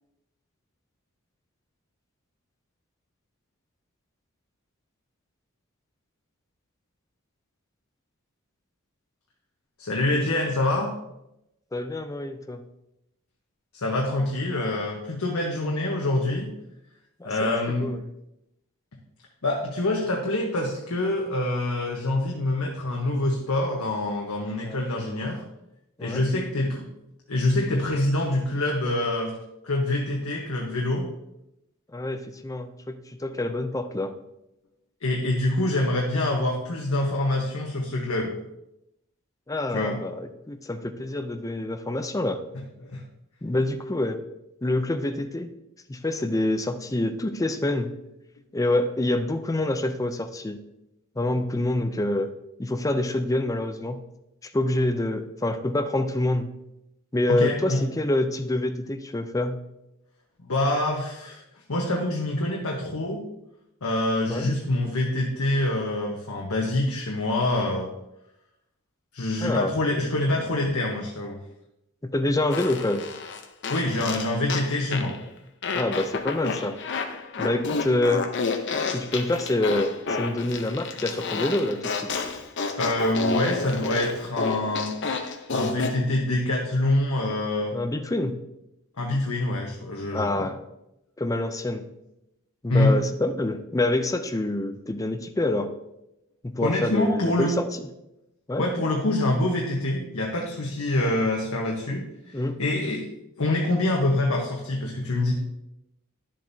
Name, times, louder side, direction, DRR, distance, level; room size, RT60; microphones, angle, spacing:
voice 1, 9.8-10.9 13.7-16.5 17.2-17.9 19.4-25.4 26.0-26.9 27.3-29.3 29.6-31.1 35.0-38.3 39.7-40.0 42.8-43.0 57.3-57.8 60.5-61.4 61.7-63.2 63.8-67.9 69.1-71.4 73.7-75.1 82.8-84.9 85.5-87.7 89.0-90.5 92.7-92.9 96.6-97.5 98.6-103.1 103.4-105.3, left 1 dB, 85° left, -1 dB, 1.1 m, -25 dB
voice 2, 11.7-12.6 17.2-17.5 17.8-18.0 24.6-24.8 26.0-26.3 31.9-34.1 39.5-42.4 43.4-44.2 44.6-45.5 45.9-47.9 48.5-50.6 51.2-52.3 52.6-54.0 54.4-56.5 57.1-59.6 64.3-64.5 69.4-69.7 72.0-73.0 75.7-76.8 77.4-78.3 78.9-82.1 87.7-88.4 90.1-90.6 91.2-91.9 92.6-95.7 96.4-97.6 98.5-98.7 102.3-102.6, left 1 dB, 15° left, 8 dB, 0.5 m, -26 dB
Fart, 72.5-75.2 75.6-86.0, left 4 dB, 55° left, 0.7 m, -30 dB
10.5 x 7.5 x 2.7 m, 0.87 s
head